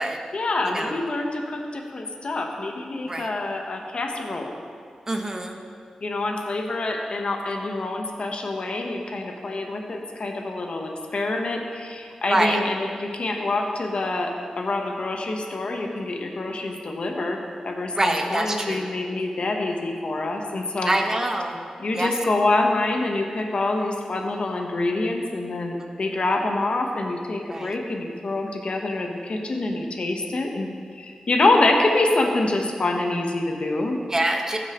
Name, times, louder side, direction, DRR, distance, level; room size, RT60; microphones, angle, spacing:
voice 1, 0.3-4.5 6.0-21.1 21.8-30.7 30.9-34.0, left 2 dB, 60° left, 2 dB, 1.0 m, -26 dB
voice 2, 5.1-5.6 12.3-12.6 17.9-18.9 20.9-21.6 21.9-22.1 27.5-27.7 34.1-34.6, right 1 dB, 25° right, 2 dB, 1.2 m, -25 dB
15.0 x 6.6 x 3.0 m, 2.2 s
cardioid pair, 60°, 2 cm